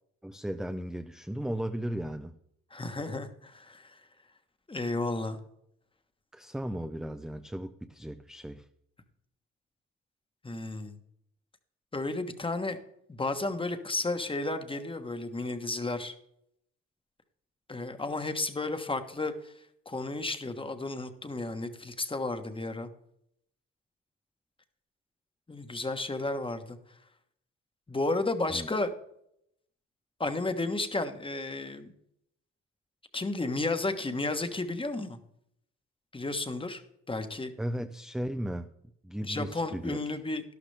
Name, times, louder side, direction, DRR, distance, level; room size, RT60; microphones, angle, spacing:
voice 1, 0.2-2.3 6.3-8.6 28.5-28.7 37.6-38.7 39.0-40.2, equal, ahead, 7 dB, 0.5 m, -36 dB
voice 2, 2.7-4.0 4.7-5.4 10.4-11.0 11.9-12.8 13.1-16.1 17.7-19.5 19.9-22.9 25.5-26.8 27.9-28.9 30.2-31.9 33.1-35.2 36.1-36.8 37.1-37.5 39.2-40.4, left 2 dB, 15° left, 8 dB, 1.3 m, -32 dB
12.0 x 12.0 x 3.4 m, 0.74 s
cardioid pair, 90°, 30 cm